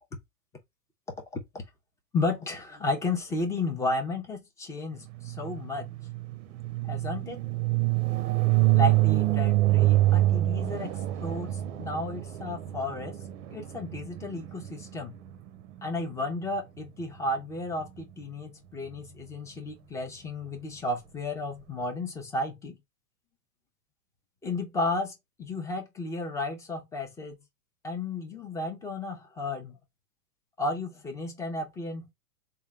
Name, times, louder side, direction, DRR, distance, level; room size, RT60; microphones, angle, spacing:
voice 1, 2.1-5.9 6.9-7.4 8.7-13.2 13.5-15.2 15.8-22.8 24.4-27.4 27.8-29.7 30.6-32.1, left 2 dB, 5° left, 0.5 m, -33 dB
sound 1, 5.2-15.1, right 16 dB, 50° right, 0.6 m, -26 dB
3.7 x 2.2 x 3.4 m
hypercardioid pair, 115°, 48 cm